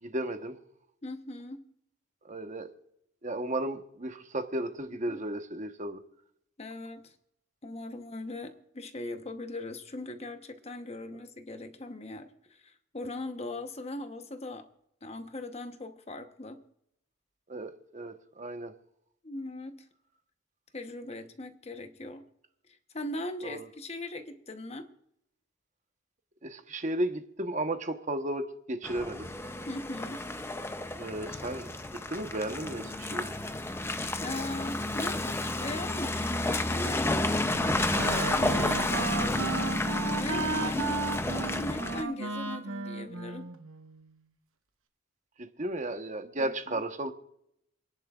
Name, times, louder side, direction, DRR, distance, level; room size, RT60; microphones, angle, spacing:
voice 1, 0.0-0.6 2.2-2.7 3.2-6.0 17.5-18.7 23.4-23.7 26.4-29.3 31.0-31.7 32.1-33.3 45.4-47.1, right 1 dB, 35° right, 7 dB, 1.1 m, -34 dB
voice 2, 1.0-1.6 4.9-5.2 6.6-7.2 7.6-14.7 15.0-16.6 19.2-19.9 20.7-22.3 22.7-24.9 29.7-30.2 34.2-39.4 40.2-41.0 41.4-43.5 46.4-46.8, left 1 dB, 30° left, 8 dB, 1.0 m, -40 dB
Car passing by / Engine, 28.8-42.0, left 2 dB, 10° left, 0.6 m, -31 dB
Wind instrument woodwind instrument, 37.4-44.1, right 3 dB, 75° right, 1.1 m, -35 dB
28.0 x 10.5 x 2.4 m, 0.78 s
head